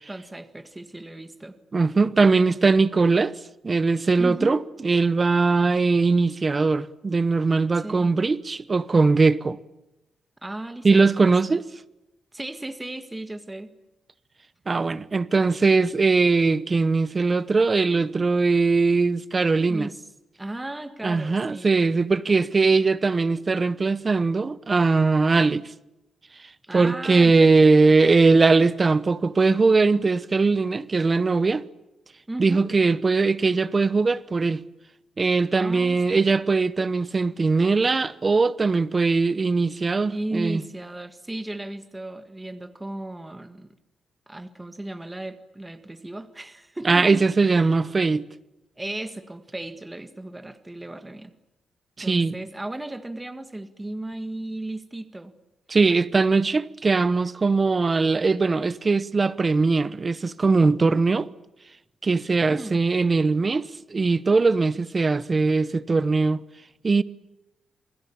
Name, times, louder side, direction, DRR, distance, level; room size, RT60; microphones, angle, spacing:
voice 1, 0.1-1.6 4.2-4.7 7.7-8.1 10.4-11.6 12.3-13.7 19.7-20.0 20.4-21.8 26.6-27.9 32.3-32.7 35.6-36.2 40.1-43.8 44.3-47.7 48.8-51.3 52.0-55.3 62.5-62.8, right 1 dB, 10° right, 1.7 m, -35 dB
voice 2, 1.7-3.4 3.6-9.6 10.8-11.6 14.7-19.9 21.0-25.6 26.7-31.6 32.4-34.6 35.2-40.6 46.8-48.3 52.0-52.3 55.7-61.3 62.0-66.4 66.8-67.0, right 4 dB, 25° right, 1.0 m, -20 dB
29.0 x 20.0 x 8.7 m
wide cardioid pair, 145°, 0 cm